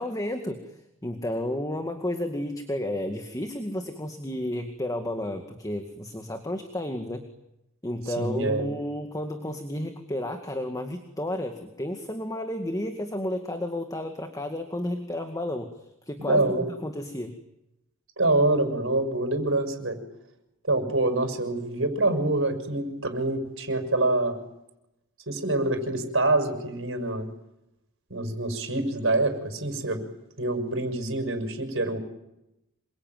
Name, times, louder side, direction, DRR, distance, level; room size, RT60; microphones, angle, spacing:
voice 1, 0.0-7.2 7.8-15.7 16.1-17.4, left 1 dB, 15° left, 5 dB, 2.1 m, -32 dB
voice 2, 8.2-8.7 16.2-16.7 18.2-20.0 20.6-24.4 25.3-27.3 28.1-30.0 30.4-32.0, right 2 dB, 65° right, 6 dB, 6.1 m, -26 dB
27.0 x 23.5 x 9.4 m, 0.88 s
head